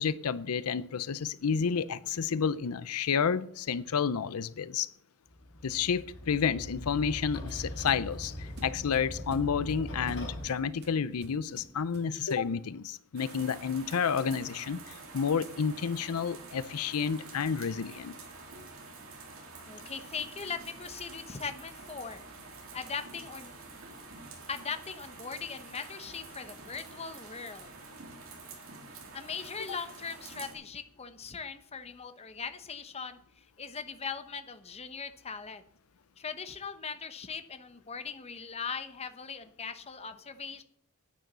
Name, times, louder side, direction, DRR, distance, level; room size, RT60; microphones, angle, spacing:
voice 1, 0.0-4.9 5.6-18.1, left 6 dB, 85° left, 17 dB, 0.5 m, -30 dB
sound 1, 5.3-10.4, left 1 dB, 55° left, 4.3 m, -41 dB
sound 2, 6.5-12.5, right 1 dB, 50° right, 2.2 m, -52 dB
sound 3, 13.2-30.5, right 3 dB, 70° right, 3.3 m, -48 dB
voice 2, 19.7-22.2 22.7-23.5 24.5-27.7 29.1-35.6 36.2-40.6, left 5 dB, 30° left, 10 dB, 0.9 m, -40 dB
10.0 x 9.3 x 6.8 m, 0.68 s
head